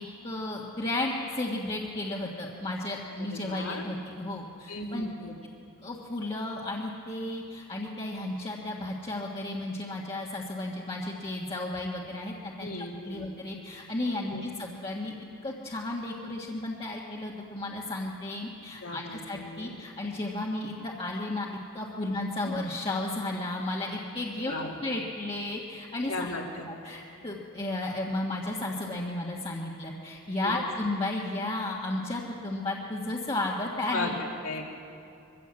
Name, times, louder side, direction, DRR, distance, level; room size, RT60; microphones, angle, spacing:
voice 1, 0.0-5.1 5.8-12.7 13.0-15.1 15.4-24.5 24.8-26.3 26.7-34.2, left 2 dB, 25° left, -4 dB, 1.5 m, -33 dB
voice 2, 3.2-3.8 4.7-5.4 12.6-13.3 14.2-14.5 18.8-19.7 24.4-24.8 26.1-26.7 30.4-30.5 33.9-34.1 34.4-34.7, left 2 dB, 70° left, 1 dB, 2.5 m, -36 dB
23.0 x 16.0 x 7.6 m, 2.6 s
head